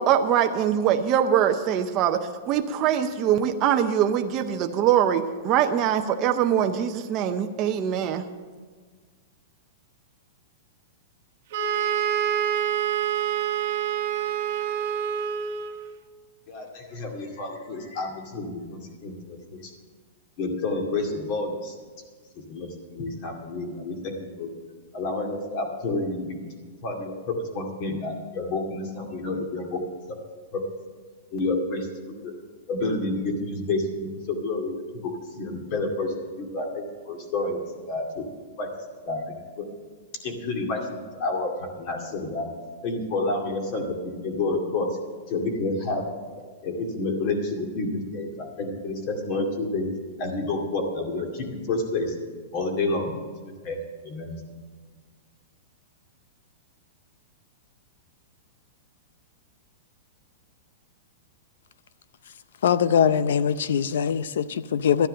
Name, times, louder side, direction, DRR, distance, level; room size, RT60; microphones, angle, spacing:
voice 1, 0.0-8.3, right 9 dB, 25° right, 4 dB, 0.6 m, -23 dB
sound 1, 11.5-15.9, right 9 dB, 50° right, 1.2 m, -26 dB
voice 2, 16.5-19.7 20.4-21.7 22.5-24.5 24.9-29.8 30.1-30.2 30.5-30.6 31.3-32.3 32.7-38.2 38.6-38.7 39.0-39.7 40.2-40.9 41.1-41.5 41.8-42.5 42.8-44.9 45.3-46.0 46.6-49.9 50.2-52.1 52.5-53.1 53.4-54.4, left 2 dB, 35° left, 3 dB, 2.3 m, -29 dB
voice 3, 62.6-65.1, left 8 dB, 80° left, 16 dB, 0.6 m, -22 dB
13.0 x 10.0 x 6.6 m, 1.5 s
supercardioid pair, 165°, 0 cm